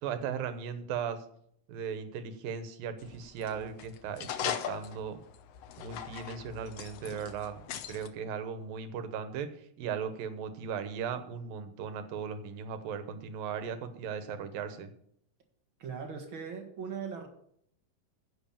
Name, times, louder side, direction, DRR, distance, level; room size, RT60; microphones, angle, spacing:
voice 1, 0.0-1.3 1.7-5.2 5.8-14.9, right 7 dB, 90° right, 10 dB, 2.8 m, -37 dB
sound 1, 3.0-8.1, left 9 dB, 85° left, 1.4 m, -40 dB
voice 2, 15.8-17.3, right 6 dB, 45° right, 3 dB, 1.9 m, -39 dB
10.5 x 8.1 x 7.1 m, 0.68 s
omnidirectional pair, 4.0 m